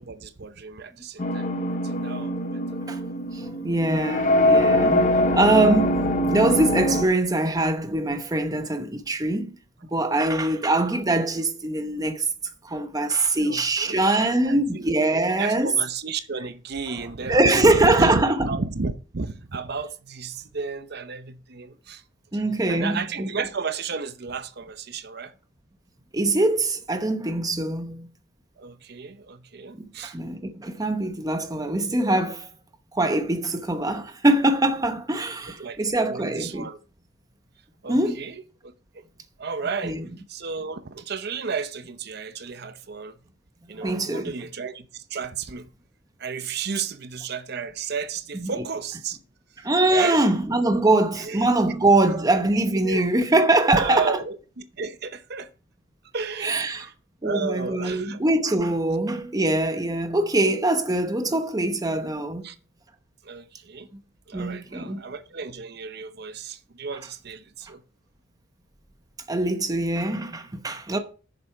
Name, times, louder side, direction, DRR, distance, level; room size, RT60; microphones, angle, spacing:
voice 1, 0.0-1.5 1.8-2.8 10.5-10.6 13.4-14.0 14.4-14.8 15.2-22.0 22.3-25.3 28.6-30.2 35.6-36.8 37.8-38.7 39.4-40.0 40.3-43.2 43.7-45.7 46.2-49.2 49.9-50.3 51.2-51.5 52.8-53.1 53.7-55.5 56.1-56.9 57.2-58.2 62.4-62.6 63.2-63.9 64.3-67.8, right 5 dB, 55° right, 0.8 m, -33 dB
sound 1, 1.2-7.0, left 1 dB, 40° left, 0.8 m, -23 dB
voice 2, 3.3-9.5 9.9-12.3 12.6-15.7 17.3-18.5 22.3-23.3 26.1-28.1 29.8-32.5 32.9-36.7 37.9-38.2 39.8-40.0 43.8-44.3 48.3-48.5 49.6-54.1 56.4-56.9 57.2-62.5 64.3-65.0 69.3-71.0, right 2 dB, 20° right, 0.8 m, -23 dB
7.6 x 6.8 x 4.6 m
head